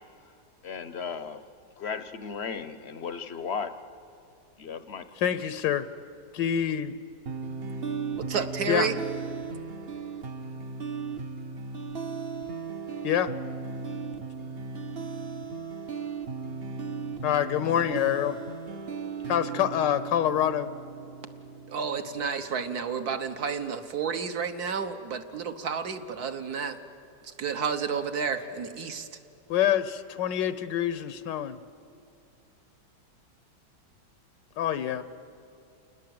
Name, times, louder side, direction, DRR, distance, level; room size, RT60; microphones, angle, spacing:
voice 1, 0.6-1.4 1.8-3.7 4.6-5.0, left 6 dB, 50° left, 12 dB, 0.8 m, -35 dB
voice 2, 5.2-5.9 6.3-6.9 8.7-8.9 13.0-13.3 17.2-18.4 19.3-20.7 29.5-31.6 34.6-35.0, left 10 dB, 85° left, 13 dB, 1.5 m, -26 dB
sound 1, 7.2-22.3, right 5 dB, 45° right, 0.9 m, -36 dB
voice 3, 8.2-9.0 21.7-26.8 27.2-29.2, right 6 dB, 60° right, 8 dB, 1.6 m, -31 dB
28.5 x 20.0 x 7.8 m, 2.7 s
omnidirectional pair, 1.9 m